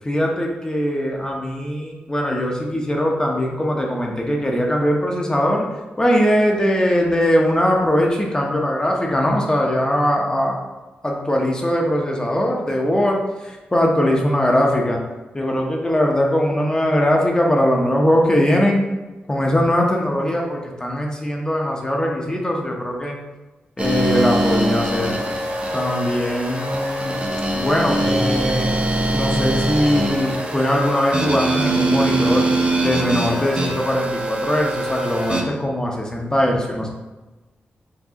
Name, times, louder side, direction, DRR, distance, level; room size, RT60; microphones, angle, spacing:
voice 1, 0.0-5.7 6.0-10.6 11.0-15.0 15.3-18.9 19.3-23.2 23.8-25.2 25.7-27.2 27.5-28.7 29.1-32.5 32.8-36.9, equal, 20° left, 0 dB, 0.8 m, -20 dB
sound 1, 23.8-35.4, right 1 dB, 30° right, 0.7 m, -22 dB
4.8 x 3.0 x 2.8 m, 1.1 s
cardioid pair, 70°, 4 cm